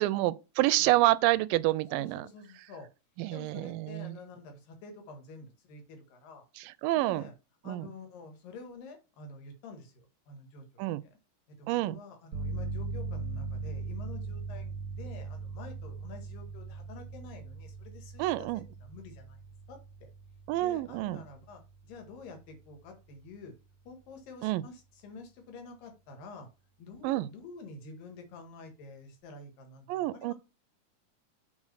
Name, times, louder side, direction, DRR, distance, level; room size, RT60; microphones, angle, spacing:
voice 1, 0.0-2.3 3.2-4.2 6.6-7.2 7.7-7.9 10.8-11.0 11.7-12.0 18.2-18.6 20.5-21.2 24.4-24.6 27.0-27.3 29.9-30.3, right 17 dB, 90° right, 2.2 m, -28 dB
voice 2, 2.0-2.9 3.3-6.5 7.0-7.3 7.6-11.1 11.6-19.4 19.7-20.1 20.5-23.5 23.9-26.5 26.8-30.3, left 3 dB, 85° left, 3.5 m, -49 dB
sound 1, 12.3-22.8, right 3 dB, 45° right, 2.0 m, -40 dB
7.5 x 3.8 x 6.5 m
omnidirectional pair, 3.9 m